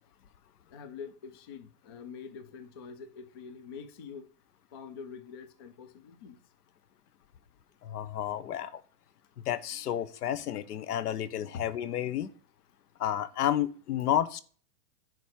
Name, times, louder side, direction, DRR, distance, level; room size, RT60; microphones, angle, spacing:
voice 1, 0.7-4.3 4.7-6.4 9.7-10.1 10.5-10.6 11.4-11.7 13.9-14.1, left 6 dB, 20° left, 0.3 m, -45 dB
voice 2, 7.8-8.8 9.4-12.3 13.0-14.4, left 11 dB, 75° left, 1.4 m, -31 dB
10.5 x 4.5 x 6.5 m
hypercardioid pair, 145°, 47 cm